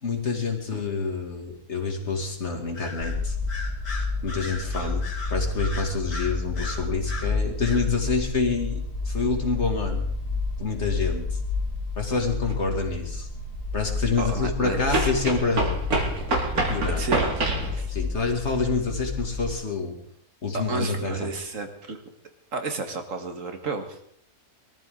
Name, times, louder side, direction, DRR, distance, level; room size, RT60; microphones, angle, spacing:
voice 1, 0.0-3.4 4.2-5.0 5.3-10.1 10.6-11.4 12.0-13.3 13.7-15.8 16.7-17.0 17.9-20.0 20.4-21.3, left 4 dB, 50° left, 2 dB, 2.7 m, -27 dB
Bird vocalization bird call bird song, 2.7-3.2 3.5-7.3 7.6-7.9, left 3 dB, 80° left, 3.1 m, -37 dB
sound 1, 3.0-19.5, left 3 dB, 65° left, 3.0 m, -30 dB
sound 2, 12.5-12.6 14.9-17.7, right 2 dB, 75° right, 2.9 m, -26 dB
voice 2, 14.2-15.1 17.0-17.9 20.5-22.0 22.5-24.0, right 4 dB, 60° right, 5 dB, 2.1 m, -32 dB
22.5 x 13.5 x 3.9 m, 0.68 s
omnidirectional pair, 1.6 m